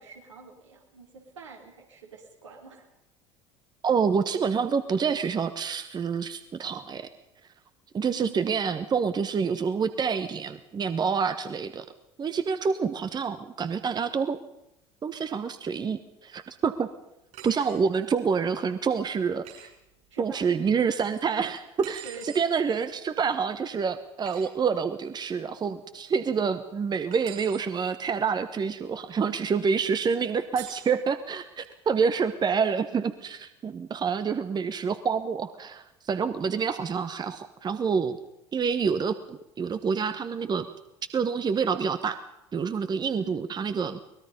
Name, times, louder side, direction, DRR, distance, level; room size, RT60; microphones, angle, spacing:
voice 1, 0.0-2.9 20.1-20.7 22.0-22.3 32.5-32.6 43.1-43.4, right 4 dB, 75° right, 0 dB, 4.7 m, -46 dB
voice 2, 3.8-7.1 7.9-11.8 12.2-14.4 15.0-16.9 17.4-19.7 20.2-38.2 38.5-40.7 41.1-42.2 42.5-44.0, right 6 dB, 30° right, 11 dB, 1.2 m, -27 dB
sound 1, 17.3-17.8 19.4-19.7 21.8-22.5 24.2-24.5 27.1-27.6 30.6-30.9, right 9 dB, 50° right, 7.3 m, -44 dB
23.5 x 20.5 x 5.4 m, 0.86 s
figure-of-eight pair, 65°, 15 cm